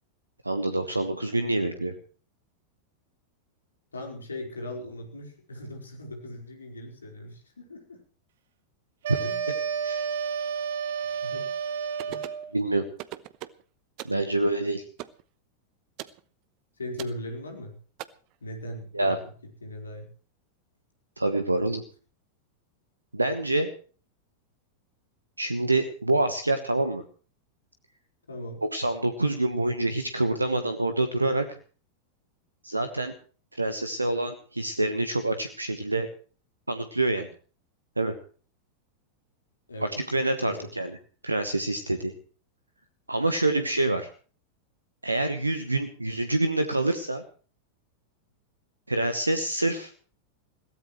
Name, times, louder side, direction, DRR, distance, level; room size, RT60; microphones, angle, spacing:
voice 1, 0.4-1.9 9.1-9.2 9.8-10.0 11.0-11.1 12.5-12.8 14.0-14.8 18.9-19.2 21.2-21.8 23.1-23.7 25.4-27.0 28.6-31.5 32.6-33.1 33.5-36.1 36.7-37.3 38.0-38.2 39.8-40.9 41.2-42.1 43.1-44.1 45.0-47.2 48.9-49.9, right 2 dB, 85° right, 10 dB, 1.2 m, -26 dB
voice 2, 3.9-8.0 9.2-9.5 11.0-11.5 12.1-12.4 16.8-17.8 18.4-19.2 19.6-20.1 28.3-28.6 39.7-39.9 40.4-40.7, left 1 dB, 75° left, 3 dB, 4.3 m, -39 dB
sound 1, 9.0-12.5, right 6 dB, 60° right, 1.5 m, -31 dB
sound 2, 12.0-12.4 13.0-13.6 14.0-14.2 15.0-15.2 16.0-16.2 17.0-17.2 18.0-18.1, right 17 dB, 40° right, 0.9 m, -39 dB
22.0 x 17.0 x 3.1 m, 0.40 s
figure-of-eight pair, 90°, 0 cm